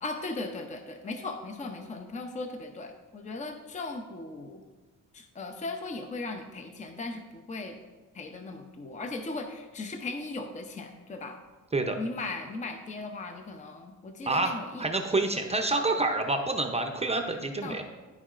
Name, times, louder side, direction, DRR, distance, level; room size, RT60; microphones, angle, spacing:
voice 1, 0.0-4.6 5.1-7.8 8.1-11.4 12.0-14.8 17.6-17.8, left 3 dB, 25° left, 5 dB, 0.6 m, -37 dB
voice 2, 14.3-17.8, right 2 dB, 20° right, 4 dB, 0.6 m, -28 dB
13.0 x 4.5 x 2.5 m, 1.3 s
cardioid pair, 105°, 31 cm